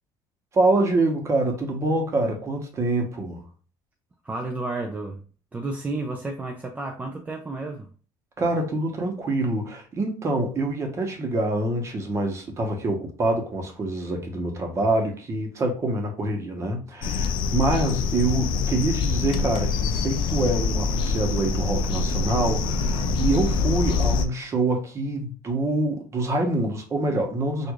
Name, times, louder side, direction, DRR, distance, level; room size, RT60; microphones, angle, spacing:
voice 1, 0.5-3.4 8.4-27.7, right 2 dB, 30° right, 1.0 m, -25 dB
voice 2, 4.2-5.2 5.5-7.9, right 2 dB, 15° right, 0.4 m, -31 dB
sound 1, 17.0-24.3, left 4 dB, 55° left, 0.4 m, -25 dB
4.5 x 2.5 x 2.4 m
cardioid pair, 130°, 10 cm